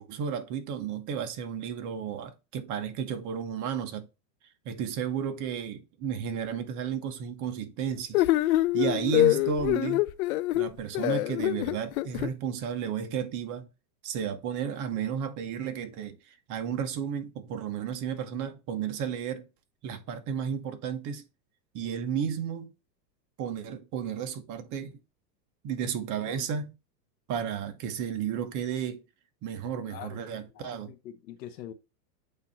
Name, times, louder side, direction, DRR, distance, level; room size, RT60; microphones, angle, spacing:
voice 1, 0.0-4.1 4.6-10.0 10.5-13.7 14.0-19.5 19.8-21.2 21.7-22.7 23.4-25.0 25.6-26.7 27.3-29.0 29.4-30.9, right 8 dB, 35° right, 1.1 m, -33 dB
sound 1, 8.1-12.3, left 17 dB, 60° left, 0.5 m, -25 dB
voice 2, 29.7-30.2 30.5-31.7, left 11 dB, 75° left, 1.2 m, -44 dB
8.4 x 2.8 x 4.1 m
hypercardioid pair, 130°, 50 cm